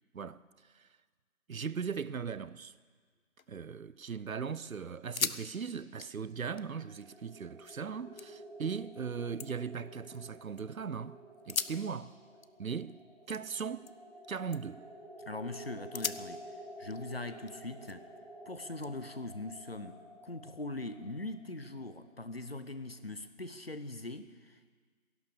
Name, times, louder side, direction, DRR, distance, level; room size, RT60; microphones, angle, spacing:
voice 1, 0.1-0.9 1.5-2.7 3.5-12.2 12.6-14.0 14.3-14.8, right 6 dB, 75° right, 0.7 m, -39 dB
sound 1, 3.1-4.2 4.5-4.6 5.0-5.4 5.7-7.8 8.2-8.7 9.1-10.6 11.3-14.2 14.5-14.9 15.3-15.5 15.9-18.2 18.8-20.0, left 6 dB, 75° left, 0.8 m, -42 dB
sound 2, 5.9-22.7, equal, 25° right, 2.3 m, -51 dB
voice 2, 15.2-16.5 16.8-18.1 18.5-24.7, left 2 dB, 45° left, 0.8 m, -41 dB
15.0 x 11.5 x 6.8 m
figure-of-eight pair, 175°, 42 cm